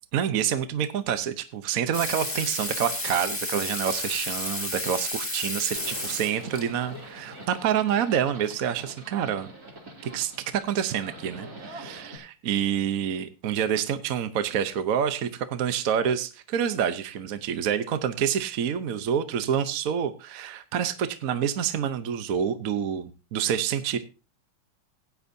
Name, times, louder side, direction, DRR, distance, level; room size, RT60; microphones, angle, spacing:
voice 1, 0.1-9.5 10.0-24.0, right 8 dB, 60° right, 11 dB, 0.9 m, -27 dB
Water tap faucet / Sink (filling or washing), 1.9-6.6 8.2-8.3, left 1 dB, 5° left, 1.5 m, -32 dB
Livestock farm animals working animals, 5.7-12.2, right 1 dB, 45° right, 3.0 m, -44 dB
17.0 x 9.5 x 2.7 m, 0.30 s
omnidirectional pair, 2.3 m